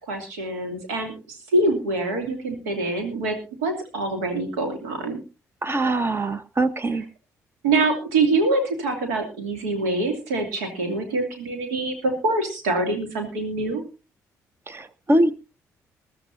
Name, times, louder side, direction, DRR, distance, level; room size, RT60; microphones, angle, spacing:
voice 1, 0.0-3.4 3.6-5.2 6.9-7.1 7.6-13.8, right 2 dB, 85° right, 5 dB, 2.7 m, -25 dB
voice 2, 5.6-7.0 14.7-15.3, right 1 dB, 30° right, 14 dB, 1.2 m, -22 dB
21.5 x 12.5 x 2.7 m, 0.30 s
hypercardioid pair, 45°, 8 cm